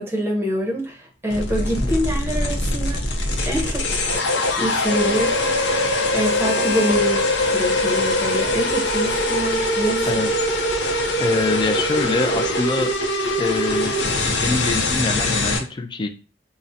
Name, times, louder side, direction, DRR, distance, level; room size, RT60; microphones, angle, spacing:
voice 1, 0.0-3.1 3.5-4.1 4.6-5.5 6.1-7.3 7.5-10.2, equal, 15° right, 1 dB, 0.7 m, -25 dB
sound 1, 1.3-15.6, left 1 dB, 85° left, 0.6 m, -22 dB
voice 2, 11.2-12.9 13.4-14.0 14.4-16.1, left 3 dB, 25° left, 7 dB, 0.3 m, -24 dB
3.7 x 2.1 x 2.7 m, 0.33 s
head